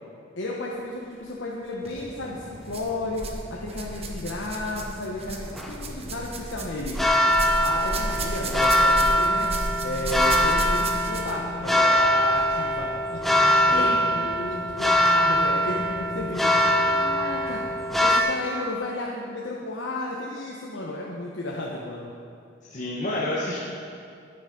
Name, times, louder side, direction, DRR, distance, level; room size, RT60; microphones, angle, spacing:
voice 1, 0.4-7.0 7.6-9.5 9.8-17.6 18.0-22.1, left 2 dB, 75° left, -3 dB, 1.1 m, -33 dB
sound 1, 1.7-1.9 2.7-3.4 3.7-11.5 12.4-12.5 13.3-13.4, right 2 dB, 30° right, 0.9 m, -33 dB
sound 2, 1.9-18.2, equal, ahead, 0.7 m, -23 dB
voice 2, 22.7-23.6, left 1 dB, 40° left, -5 dB, 1.3 m, -29 dB
10.0 x 9.0 x 5.3 m, 2.3 s
head